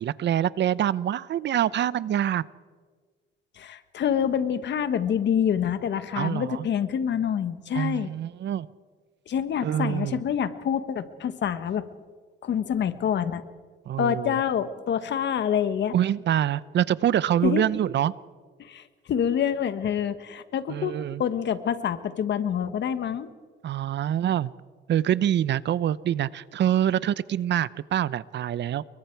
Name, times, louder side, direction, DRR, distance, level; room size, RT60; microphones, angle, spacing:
voice 1, 0.0-2.4 6.1-6.7 7.7-8.7 9.6-10.2 13.9-14.3 15.9-18.1 20.7-21.2 23.6-24.5 24.9-28.8, right 10 dB, 65° right, 18 dB, 0.7 m, -25 dB
voice 2, 3.6-8.1 9.3-11.8 12.4-13.4 14.0-15.9 17.4-17.6 18.6-20.9 21.2-23.3, left 8 dB, 65° left, 11 dB, 1.5 m, -26 dB
29.5 x 23.0 x 4.7 m, 1.5 s
cardioid pair, 90°, 20 cm